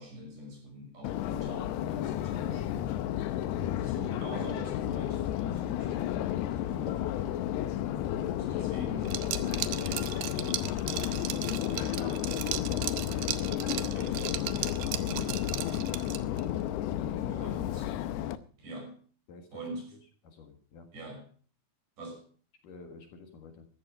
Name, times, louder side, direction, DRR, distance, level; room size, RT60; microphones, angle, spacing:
voice 1, 0.0-3.0 3.6-7.3 8.1-10.7 11.1-12.3 12.8-15.9 17.3-17.9 18.6-19.0 19.5-19.9 20.9-21.2 22.0-22.3, equal, 50° right, 2 dB, 7.2 m, -45 dB
Subway metro underground, 1.0-18.4, left 12 dB, 85° left, 2.9 m, -32 dB
Liquid, 9.1-16.5, right 13 dB, 80° right, 2.7 m, -37 dB
voice 2, 16.8-17.6 19.3-19.6 20.2-20.9 22.6-23.7, left 4 dB, 60° left, 5 dB, 3.0 m, -49 dB
14.5 x 13.0 x 5.0 m, 0.41 s
omnidirectional pair, 4.6 m